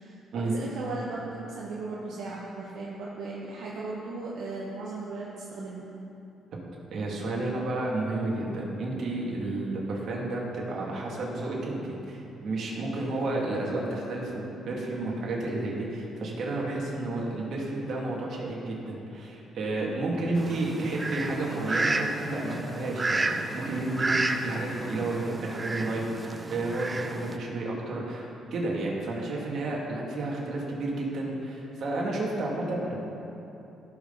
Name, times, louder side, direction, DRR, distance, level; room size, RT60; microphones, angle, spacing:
voice 1, 0.0-5.9, right 3 dB, 80° right, -5 dB, 1.2 m, -37 dB
voice 2, 6.9-33.0, right 2 dB, 65° right, -3 dB, 2.3 m, -31 dB
Fowl, 20.3-27.4, right 2 dB, 25° right, 0.6 m, -32 dB
16.5 x 6.0 x 4.0 m, 2.9 s
cardioid pair, 90°, 0 cm